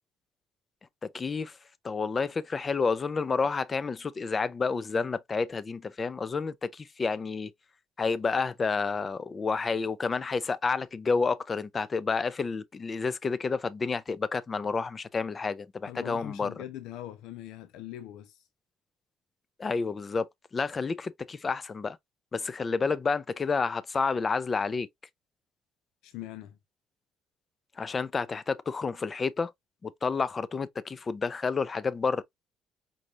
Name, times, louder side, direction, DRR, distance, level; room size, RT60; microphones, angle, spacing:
voice 1, 1.0-1.6 1.8-7.5 8.0-16.5 19.6-20.3 20.5-22.0 22.3-24.9 27.8-29.5 29.8-32.2, left 4 dB, 30° left, 0.5 m, -30 dB
voice 2, 15.9-18.5 26.0-26.6, left 13 dB, 90° left, 0.5 m, -42 dB
5.4 x 2.3 x 3.0 m
cardioid pair, 110°, 0 cm